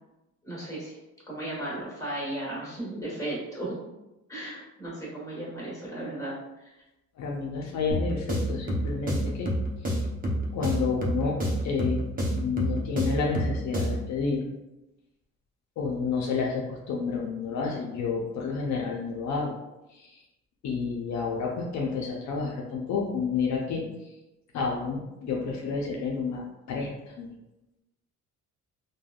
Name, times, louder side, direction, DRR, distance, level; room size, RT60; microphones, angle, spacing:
voice 1, 0.4-0.9 1.3-3.8 4.3-6.3 6.6-6.7, right 1 dB, 10° left, -7 dB, 1.5 m, -35 dB
voice 2, 7.2-9.5 10.5-11.4 11.6-12.1 12.3-14.4 15.8-19.6 19.9-20.1 20.6-23.8 24.5-26.4 26.7-26.9 27.2-27.3, left 5 dB, 65° left, -1 dB, 0.5 m, -30 dB
sound 1, 7.9-14.1, equal, 30° right, 0.7 m, -29 dB
3.3 x 2.2 x 2.3 m, 0.96 s
cardioid pair, 90°, 30 cm